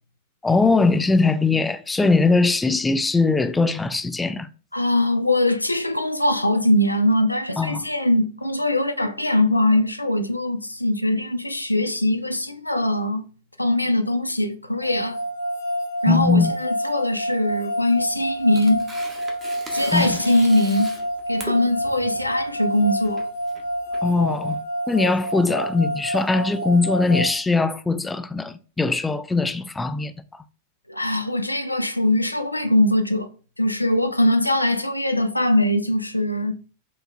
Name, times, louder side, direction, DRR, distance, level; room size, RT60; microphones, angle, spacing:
voice 1, 0.4-4.5 7.6-7.9 16.1-16.5 19.9-20.2 24.0-24.6 24.9-30.4, left 3 dB, 10° left, 0.3 m, -21 dB
voice 2, 4.7-13.3 13.6-15.2 16.0-18.9 19.7-20.9 21.3-23.3 30.9-33.3 33.6-36.6, left 1 dB, 85° left, 0.3 m, -21 dB
sound 1, 14.8-27.3, equal, 65° left, 1.4 m, -28 dB
Tearing, 17.9-24.6, right 2 dB, 25° right, 0.9 m, -40 dB
5.7 x 2.7 x 2.2 m
figure-of-eight pair, 90°, 0 cm